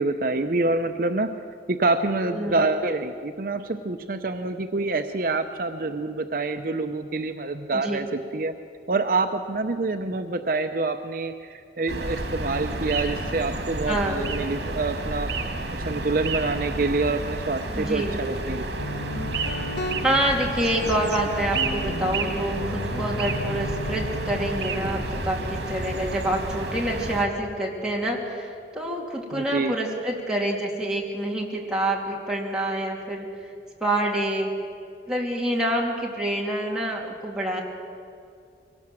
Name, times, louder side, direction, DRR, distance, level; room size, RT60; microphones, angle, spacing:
voice 1, 0.0-1.3 1.7-8.5 8.9-15.3 15.7-18.6 29.3-29.7, right 3 dB, 50° right, 7 dB, 0.7 m, -26 dB
voice 2, 2.2-2.7 7.7-8.0 13.9-14.2 17.7-18.2 20.0-33.5 33.8-34.5 35.1-37.6, right 1 dB, 5° right, -2 dB, 2.7 m, -27 dB
sound 1, 11.9-27.2, right 2 dB, 75° right, 2.5 m, -31 dB
Guitar, 18.8-28.3, left 1 dB, 85° left, 1.2 m, -36 dB
22.5 x 18.0 x 7.6 m, 2.5 s
head